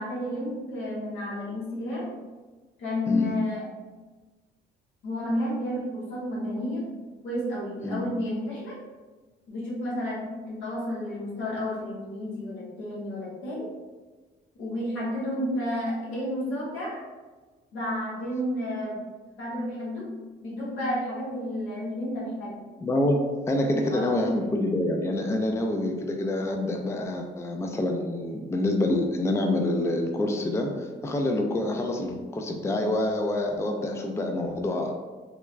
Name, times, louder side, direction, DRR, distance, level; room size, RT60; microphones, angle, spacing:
voice 1, 0.0-2.1 2.8-3.7 5.0-6.8 7.2-8.8 9.5-13.7 14.6-17.0 17.7-19.0 19.3-20.1 20.4-22.5 23.6-24.3, left 1 dB, 90° left, -6 dB, 1.3 m, -31 dB
voice 2, 22.8-34.9, left 1 dB, 15° left, 3 dB, 0.4 m, -27 dB
3.4 x 2.3 x 3.1 m, 1.3 s
cardioid pair, 90°, 20 cm